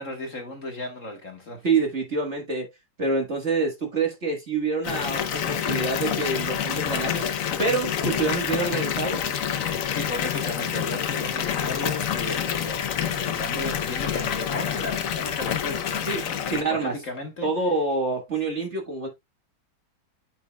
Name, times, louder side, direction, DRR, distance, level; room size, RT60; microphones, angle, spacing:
voice 1, 0.0-1.7 9.9-17.5, left 2 dB, 45° left, 1.5 m, -35 dB
voice 2, 1.6-2.7 3.0-7.2 7.6-9.2 16.1-16.9 17.4-19.1, right 3 dB, 35° right, 1.6 m, -26 dB
Water tap faucet / Bathtub (filling or washing) / Fill (with liquid), 4.8-16.6, left 8 dB, 65° left, 0.8 m, -27 dB
9.0 x 6.3 x 2.2 m
omnidirectional pair, 2.2 m